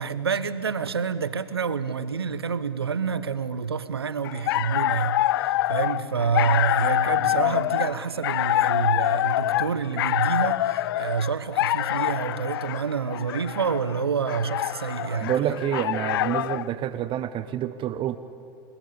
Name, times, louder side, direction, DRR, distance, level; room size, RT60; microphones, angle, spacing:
voice 1, 0.0-15.6, right 6 dB, 85° right, 1.1 m, -28 dB
sound 1, 4.2-16.7, left 14 dB, 70° left, 0.5 m, -25 dB
sound 2, 5.1-15.2, left 1 dB, 90° left, 7.2 m, -57 dB
sound 3, 5.8-11.1 11.3-11.4, left 7 dB, 35° left, 3.4 m, -50 dB
voice 2, 15.0-18.2, right 11 dB, 40° right, 1.0 m, -28 dB
29.5 x 19.0 x 8.6 m
hypercardioid pair, 85°, 13 cm